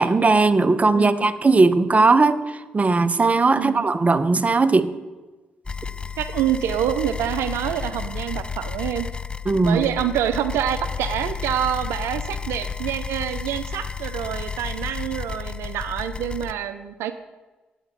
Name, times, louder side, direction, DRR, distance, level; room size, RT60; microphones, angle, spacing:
voice 1, 0.0-4.9 9.5-9.8, right 3 dB, 30° right, 11 dB, 0.9 m, -18 dB
voice 2, 0.9-1.3 3.5-3.8 6.2-9.1 9.6-17.2, right 10 dB, 80° right, 9 dB, 0.5 m, -26 dB
sound 1, 5.7-16.5, left 6 dB, 20° left, 0.5 m, -32 dB
9.1 x 7.9 x 6.6 m, 1.2 s
hypercardioid pair, 45°, 4 cm